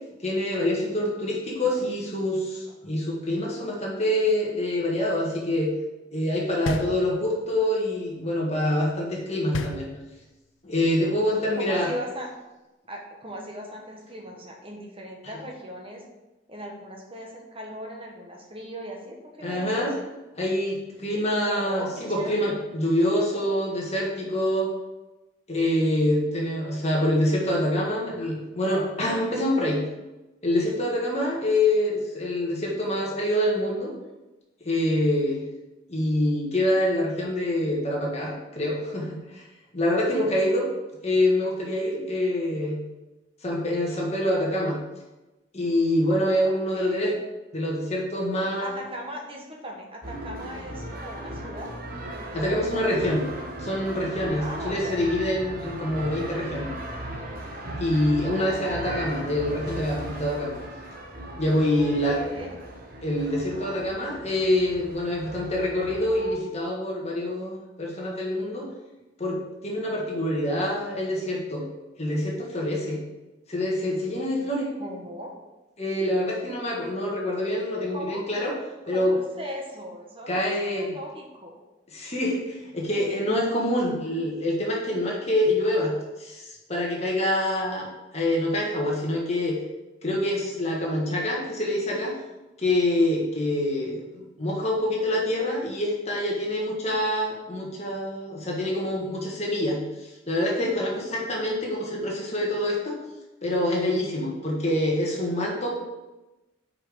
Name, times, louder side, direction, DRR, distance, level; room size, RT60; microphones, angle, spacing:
voice 1, 0.2-5.7 6.1-9.9 10.6-11.9 19.4-19.9 20.4-24.7 25.5-29.8 30.4-33.9 34.6-35.4 35.9-39.5 39.7-40.7 41.0-42.8 43.4-44.8 45.5-47.1 47.5-48.8 52.3-53.2 53.6-56.7 57.8-60.6 61.4-62.2 63.0-68.7 69.2-69.4 69.6-71.6 72.0-73.0 73.5-74.7 75.8-78.5 78.9-79.1 80.3-80.9 81.9-87.9 88.1-89.6 90.0-92.1 92.6-102.9 103.4-105.8, left 1 dB, 35° left, -2 dB, 1.6 m, -26 dB
sound 1, 6.7-7.6 9.5-10.5, left 2 dB, 80° left, 0.7 m, -32 dB
voice 2, 11.6-12.3 12.9-16.0 16.5-19.8 21.5-22.6 46.4-47.2 48.6-51.7 52.0-53.2 54.4-55.0 61.7-62.6 74.8-75.4 77.9-78.2 78.9-81.6, equal, 30° right, 0 dB, 1.4 m, -39 dB
sound 2, 50.0-66.4, right 1 dB, 45° right, 1.2 m, -37 dB
6.1 x 5.1 x 6.2 m, 1.1 s
head